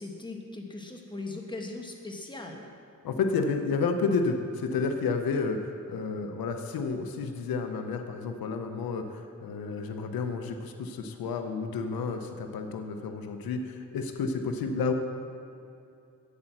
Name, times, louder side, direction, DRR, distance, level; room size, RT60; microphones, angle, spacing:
voice 1, 0.0-2.7, left 2 dB, 15° left, 2 dB, 1.3 m, -39 dB
voice 2, 3.0-14.9, left 4 dB, 85° left, 6 dB, 0.8 m, -31 dB
8.8 x 8.3 x 6.0 m, 2.6 s
cardioid pair, 75°, 35 cm